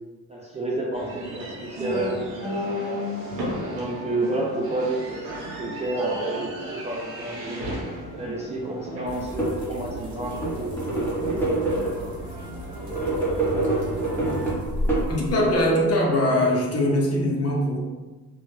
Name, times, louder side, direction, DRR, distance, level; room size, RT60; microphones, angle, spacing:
voice 1, 0.3-2.6 2.8-3.1 3.6-7.6 8.1-12.2, right 2 dB, 20° right, -3 dB, 0.3 m, -31 dB
sound 1, 0.9-14.6, equal, 80° right, 0.8 m, -34 dB
sound 2, 9.1-15.6, right 1 dB, 50° right, 1.0 m, -35 dB
sound 3, 9.2-9.7 10.2-12.1 12.8-15.5, right 2 dB, 5° left, 0.8 m, -26 dB
voice 2, 15.1-17.8, left 1 dB, 40° left, -1 dB, 0.7 m, -22 dB
2.1 x 2.1 x 3.0 m, 1.2 s
cardioid pair, 75°, 36 cm